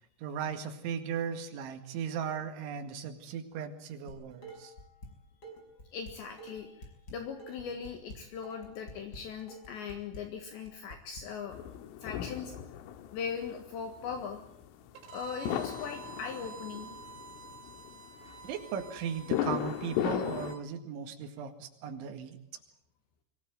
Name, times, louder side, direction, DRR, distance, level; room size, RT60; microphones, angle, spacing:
voice 1, 0.2-4.7 18.4-22.4, right 7 dB, 70° right, 5 dB, 4.3 m, -37 dB
Dishes pots and pans, 4.1-5.1 5.4-11.2, equal, 20° left, 5.7 m, -48 dB
voice 2, 5.9-6.9 7.1-11.6 12.0-12.5 13.1-14.4 15.1-16.9, left 6 dB, 70° left, 5 dB, 3.7 m, -39 dB
sound 1, 11.5-20.6, left 10 dB, 85° left, 3.8 m, -36 dB
Bowed string instrument, 14.9-20.6, right 4 dB, 85° right, 5.7 m, -49 dB
24.0 x 18.0 x 9.3 m, 0.73 s
omnidirectional pair, 5.8 m